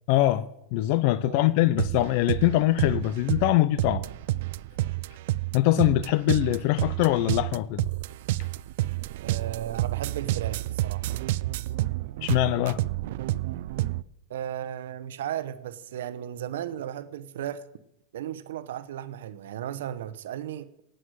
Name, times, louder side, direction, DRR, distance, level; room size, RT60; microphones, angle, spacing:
voice 1, 0.1-4.0 5.5-7.9 12.2-12.8, left 15 dB, 50° left, 0.5 m, -23 dB
sound 1, 1.8-14.0, right 16 dB, 65° right, 0.4 m, -29 dB
voice 2, 9.2-11.1 14.3-17.6 18.1-20.7, right 11 dB, 80° right, 0.9 m, -35 dB
17.5 x 7.9 x 6.4 m
supercardioid pair, 150°, 0 cm